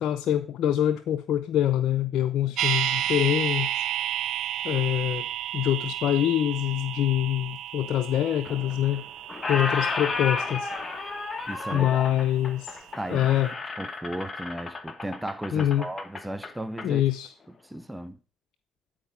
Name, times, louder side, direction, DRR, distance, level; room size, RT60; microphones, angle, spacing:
voice 1, 0.0-3.8 4.6-5.3 5.5-9.0 9.5-10.7 11.7-12.8 13.1-13.5 15.5-15.9 16.8-17.3, left 11 dB, 70° left, 0.6 m, -25 dB
sound 1, 2.6-12.6 12.9-13.0, right 12 dB, 75° right, 0.5 m, -32 dB
Squeak, 8.4-9.0 9.3-16.9, left 3 dB, 30° left, 1.3 m, -33 dB
voice 2, 11.5-12.0 13.0-13.3 13.8-17.0 17.7-18.2, right 1 dB, 5° right, 0.7 m, -35 dB
10.0 x 4.5 x 5.8 m
cardioid pair, 80°, 0 cm